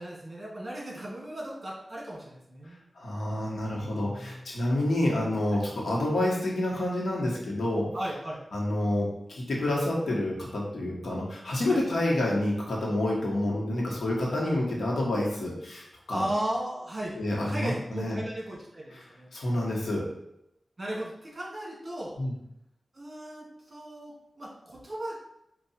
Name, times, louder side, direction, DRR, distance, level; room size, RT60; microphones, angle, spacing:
voice 1, 0.0-2.8 3.7-4.4 7.9-8.4 11.7-11.8 14.5-14.6 16.1-17.2 17.5-19.3 20.8-22.2 22.9-25.1, right 1 dB, 35° right, -5 dB, 1.7 m, -36 dB
voice 2, 2.9-7.9 8.5-16.2 17.2-18.2 19.3-20.1 22.2-22.3, left 1 dB, 85° left, -3 dB, 1.2 m, -28 dB
4.7 x 2.5 x 4.2 m, 0.81 s
wide cardioid pair, 110°, 0 cm